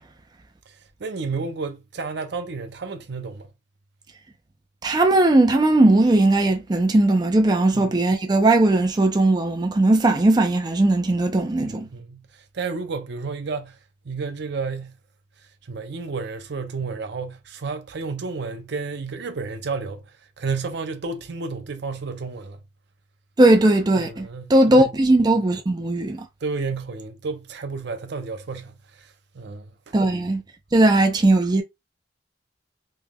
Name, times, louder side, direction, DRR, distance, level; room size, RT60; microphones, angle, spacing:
voice 1, 0.7-3.5 7.7-8.0 11.6-13.8 14.0-15.0 15.6-22.6 24.0-24.9 26.4-29.9, right 4 dB, 65° right, 0.6 m, -32 dB
voice 2, 4.8-11.9 23.4-26.3 29.9-30.4 30.7-31.6, right 2 dB, 25° right, 0.5 m, -18 dB
3.5 x 3.2 x 2.3 m
head